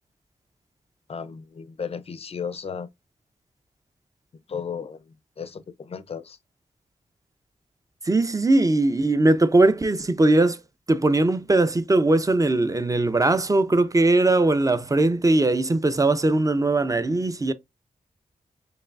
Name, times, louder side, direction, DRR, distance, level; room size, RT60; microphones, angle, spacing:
voice 1, 1.1-2.9 4.5-6.4, left 6 dB, 45° left, 0.5 m, -35 dB
voice 2, 8.0-10.6 10.9-17.5, right 2 dB, 25° right, 0.5 m, -20 dB
4.7 x 3.2 x 2.4 m
cardioid pair, 60°, 14 cm